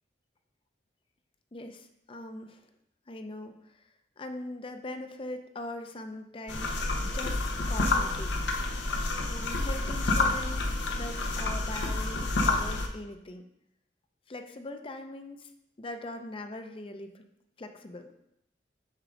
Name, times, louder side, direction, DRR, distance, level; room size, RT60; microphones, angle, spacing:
voice 1, 1.5-2.6 3.1-3.9 4.2-7.4 7.7-8.3 9.3-13.4 14.3-15.5 15.8-17.3 17.6-18.1, left 1 dB, 30° left, 7 dB, 0.5 m, -41 dB
sound 1, 6.5-12.9, left 2 dB, 85° left, 0.7 m, -29 dB
6.5 x 3.7 x 5.0 m, 0.81 s
head